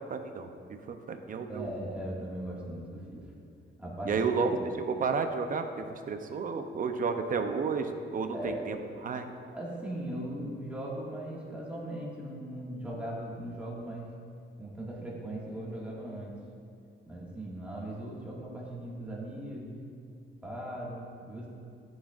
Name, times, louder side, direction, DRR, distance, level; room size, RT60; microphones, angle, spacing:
voice 1, 0.1-0.5 0.9-1.7 4.0-8.8 9.0-9.3, right 5 dB, 40° right, 6 dB, 0.5 m, -31 dB
voice 2, 1.5-3.3 3.8-4.7 8.3-8.8 9.5-14.1 14.6-16.3 17.1-19.8 20.4-21.5, right 1 dB, 5° right, -6 dB, 1.7 m, -39 dB
13.5 x 6.3 x 2.4 m, 2.5 s
wide cardioid pair, 150°, 21 cm